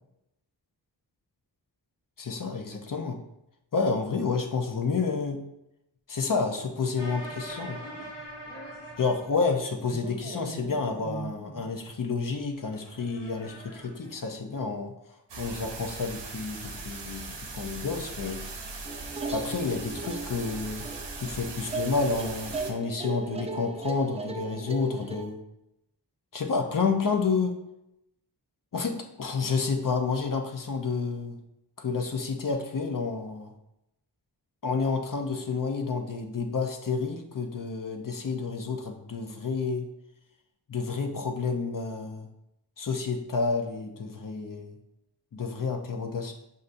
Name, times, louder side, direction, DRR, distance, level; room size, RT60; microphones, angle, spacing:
voice 1, 2.2-3.2 3.7-5.4 6.1-7.8 9.0-14.9 15.4-18.4 19.3-20.8 21.2-25.4 26.3-27.5 28.7-31.4 31.8-33.5 34.6-39.9 40.7-42.3 42.8-44.8 45.3-46.3, left 4 dB, 50° left, 4 dB, 0.6 m, -30 dB
sound 1, 7.0-9.6 9.9-11.7 12.5-14.2, right 1 dB, 80° left, 1.4 m, -42 dB
sound 2, 15.3-22.7, right 3 dB, 80° right, 0.6 m, -39 dB
sound 3, 18.9-25.3, right 4 dB, 15° right, 0.3 m, -38 dB
5.3 x 2.6 x 2.5 m, 0.86 s
wide cardioid pair, 55°, 42 cm